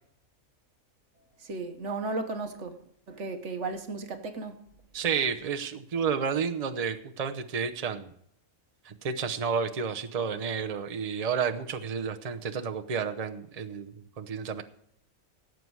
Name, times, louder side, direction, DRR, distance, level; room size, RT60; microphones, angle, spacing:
voice 1, 1.4-4.6, right 3 dB, 65° right, 1.4 m, -35 dB
voice 2, 4.9-8.1 8.8-14.6, right 6 dB, 35° right, 0.8 m, -31 dB
17.0 x 7.9 x 4.7 m
omnidirectional pair, 1.3 m